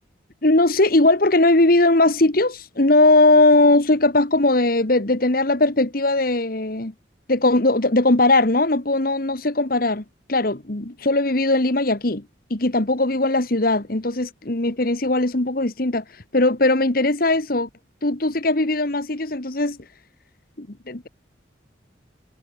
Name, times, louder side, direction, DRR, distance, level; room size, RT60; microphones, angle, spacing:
voice 1, 0.4-6.9 7.3-12.2 12.5-16.0 16.3-17.7 18.0-19.8 20.6-21.1, left 2 dB, 50° left, 1.6 m, -19 dB
head